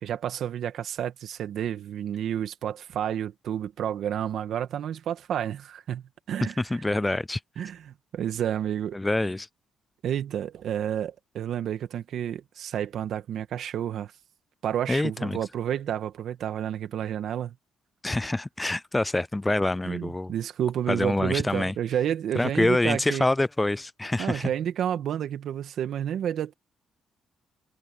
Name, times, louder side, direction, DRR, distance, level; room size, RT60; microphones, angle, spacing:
voice 1, 0.0-6.6 7.6-9.0 10.0-14.1 14.6-17.5 19.8-23.3 24.2-26.5, right 10 dB, 70° right, 2.0 m, -30 dB
voice 2, 6.6-7.4 8.9-9.5 14.9-15.4 18.0-20.3 20.9-21.7 22.4-24.5, left 2 dB, 15° left, 0.4 m, -26 dB
cardioid pair, 90°, 0 cm